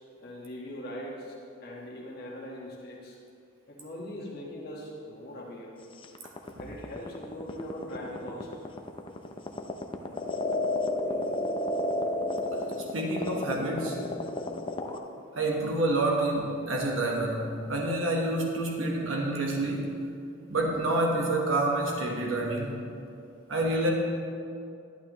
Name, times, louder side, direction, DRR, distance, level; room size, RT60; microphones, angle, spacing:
voice 1, 0.2-1.3 1.6-3.2 3.7-5.7 6.6-8.6, equal, 50° left, -3 dB, 1.4 m, -41 dB
sound 1, 6.0-15.0, left 1 dB, 25° left, 0.5 m, -31 dB
voice 2, 12.9-14.1 15.3-20.1 20.5-22.8 23.5-23.9, right 2 dB, 75° right, -1 dB, 1.2 m, -28 dB
11.5 x 11.0 x 3.0 m, 2.5 s
head